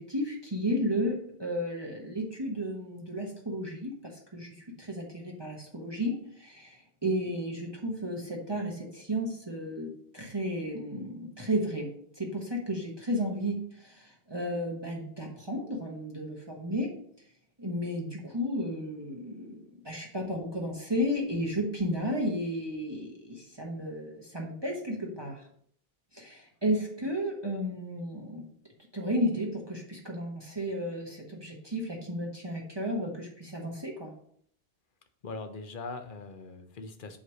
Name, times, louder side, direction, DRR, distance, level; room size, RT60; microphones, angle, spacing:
voice 1, 0.0-17.0 17.6-25.4 26.1-28.5 28.9-34.1, equal, 25° right, -1 dB, 1.2 m, -33 dB
voice 2, 35.2-37.2, left 3 dB, 55° left, 8 dB, 1.0 m, -41 dB
7.9 x 3.2 x 6.3 m, 0.63 s
omnidirectional pair, 1.0 m